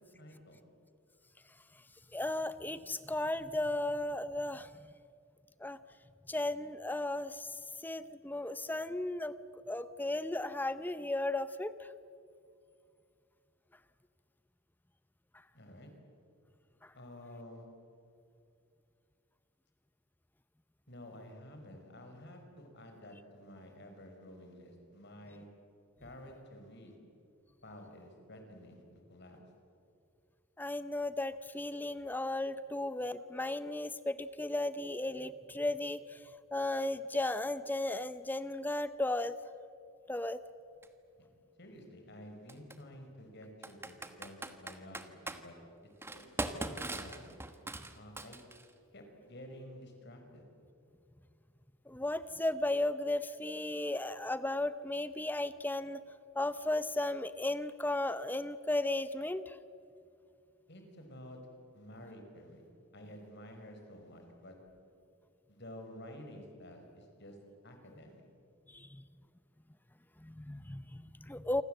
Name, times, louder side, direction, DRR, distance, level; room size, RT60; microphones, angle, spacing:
voice 1, 0.2-0.7 15.5-15.9 16.9-17.6 20.9-25.5 26.0-27.0 27.6-28.8 29.1-29.4 41.2-41.3 41.6-45.6 46.1-47.3 47.9-48.4 48.9-50.4 60.7-61.4 61.7-62.7 62.9-64.6 65.5-67.4 67.6-68.2, left 1 dB, 50° left, 4 dB, 5.2 m, -51 dB
voice 2, 2.1-4.7 5.6-5.8 6.3-7.5 7.8-9.3 9.7-11.7 30.6-36.2 36.5-39.4 40.1-40.4 51.9-56.0 56.3-59.6 68.7-69.0 70.2-71.6, left 2 dB, 10° left, 13 dB, 0.6 m, -35 dB
Computer keyboard, 40.8-40.9 42.5-42.8 43.6-45.4 46.0-48.7, right 2 dB, 10° right, 1.3 m, -40 dB
28.0 x 25.5 x 7.9 m, 2.5 s
head